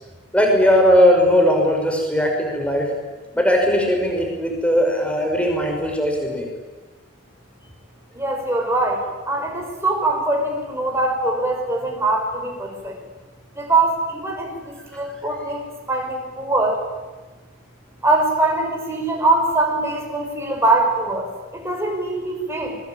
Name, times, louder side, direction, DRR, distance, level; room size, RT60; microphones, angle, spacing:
voice 1, 0.3-2.9 3.3-6.5, equal, 5° left, 1 dB, 5.7 m, -18 dB
voice 2, 8.1-13.0 13.6-16.8 18.0-22.8, right 2 dB, 10° right, 1 dB, 5.6 m, -22 dB
28.0 x 23.0 x 8.9 m, 1.2 s
head